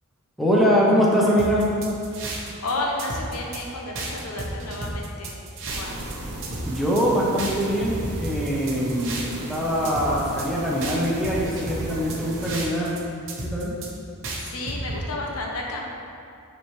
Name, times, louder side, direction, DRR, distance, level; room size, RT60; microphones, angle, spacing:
voice 1, 0.4-1.7 6.6-13.0 13.4-13.8, equal, ahead, -6 dB, 0.9 m, -23 dB
sound 1, 1.4-2.7 3.0-3.6 3.9-6.1 6.4-7.0 7.4-9.6 9.8-10.5 10.8-13.0 13.3-13.9 14.2-15.0, right 2 dB, 60° right, 1.0 m, -33 dB
voice 2, 2.6-5.3 5.6-5.9 14.4-15.8, left 2 dB, 85° left, -1 dB, 1.0 m, -31 dB
sound 2, 5.6-12.6, right 1 dB, 90° right, 1.0 m, -37 dB
9.7 x 4.2 x 3.2 m, 2.5 s
head